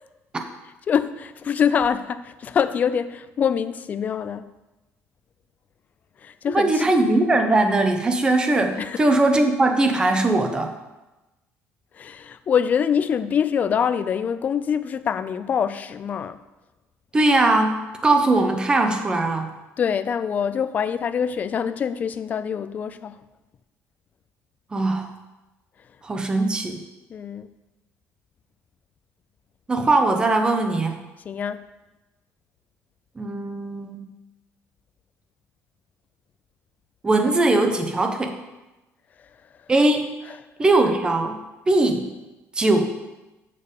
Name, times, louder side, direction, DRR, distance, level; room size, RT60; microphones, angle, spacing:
voice 1, 0.9-4.5 6.2-6.8 8.8-9.1 12.0-16.4 19.8-23.2 27.1-27.5 31.3-31.6 40.3-40.4, left 7 dB, 30° left, 0.4 m, -24 dB
voice 2, 6.5-10.7 17.1-19.5 24.7-25.1 26.0-26.8 29.7-31.0 33.2-34.1 37.0-38.4 39.7-40.1 40.6-41.4 41.7-42.1 42.6-42.9, right 2 dB, 15° right, 0.8 m, -20 dB
6.8 x 6.7 x 5.2 m
cardioid pair, 150°, 5 cm